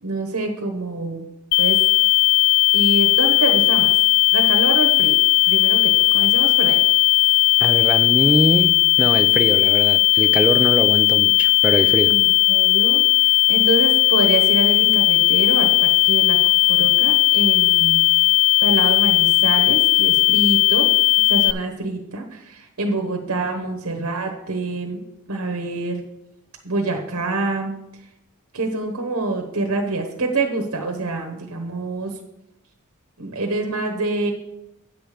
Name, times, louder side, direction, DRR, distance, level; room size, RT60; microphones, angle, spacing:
voice 1, 0.0-1.3 1.6-1.8 2.7-3.9 4.3-5.2 5.4-6.8 12.1-16.4 16.7-18.0 18.6-20.9 21.3-25.0 25.3-26.0 26.6-27.7 28.5-32.1 33.2-34.3, right 3 dB, 80° right, 3 dB, 1.2 m, -26 dB
sound 1, 1.5-21.5, left 20 dB, 85° left, 0.3 m, -16 dB
voice 2, 7.6-12.2, right 1 dB, 5° right, 11 dB, 0.4 m, -23 dB
9.2 x 6.7 x 5.1 m, 0.84 s
head